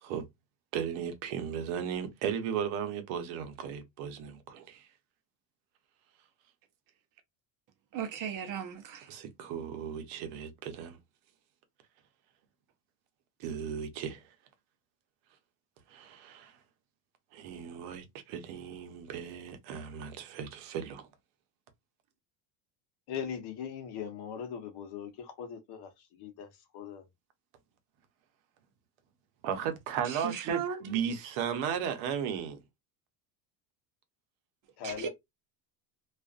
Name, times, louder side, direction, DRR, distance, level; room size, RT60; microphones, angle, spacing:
voice 1, 0.7-4.9 9.1-11.0 13.4-14.2 15.9-16.6 17.3-21.1 29.4-32.6, right 8 dB, 70° right, 0.8 m, -36 dB
voice 2, 7.9-9.1 30.0-30.8 34.8-35.1, right 8 dB, 40° right, 0.7 m, -36 dB
voice 3, 23.1-25.9 26.2-26.5 26.7-27.0 34.8-35.1, left 8 dB, 50° left, 0.8 m, -39 dB
2.4 x 2.4 x 2.3 m
cardioid pair, 125°, 50 cm